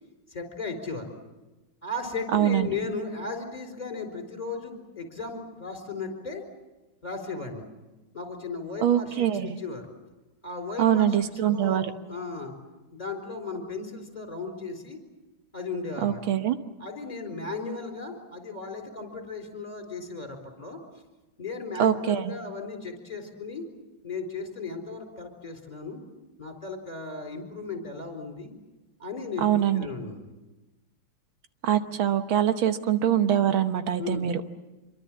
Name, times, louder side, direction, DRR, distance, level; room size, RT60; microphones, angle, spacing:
voice 1, 0.3-1.0 1.8-6.4 7.0-7.7 8.1-9.3 9.6-9.9 10.4-11.8 12.1-12.5 12.9-15.0 15.5-16.2 16.8-20.8 21.4-23.6 24.0-26.0 26.4-28.5 29.0-30.3 34.0-34.3, left 3 dB, 20° left, 3 dB, 4.3 m, -36 dB
voice 2, 2.3-2.7 8.8-9.6 10.8-11.9 16.0-16.6 21.8-22.3 29.4-29.9 31.6-34.4, right 10 dB, 85° right, 9 dB, 1.9 m, -23 dB
26.0 x 23.5 x 7.4 m, 1.1 s
omnidirectional pair, 2.2 m